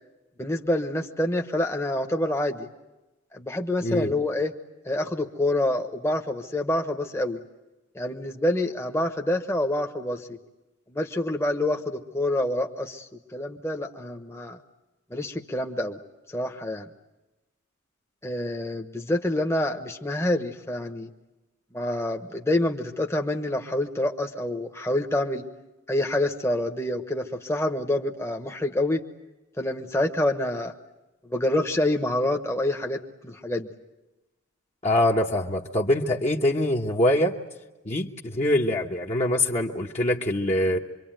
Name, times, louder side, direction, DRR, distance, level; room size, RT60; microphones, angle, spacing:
voice 1, 0.4-2.7 3.3-4.5 4.8-7.4 7.9-10.4 10.9-14.6 15.1-16.0 16.3-16.9 18.2-21.1 21.7-25.4 25.9-29.1 29.6-30.7 31.2-33.7, left 1 dB, 15° left, 3 dB, 1.1 m, -27 dB
voice 2, 3.8-4.1 34.8-37.4 37.8-40.8, left 1 dB, 30° left, -1 dB, 1.1 m, -24 dB
26.0 x 24.0 x 9.1 m, 1.0 s
head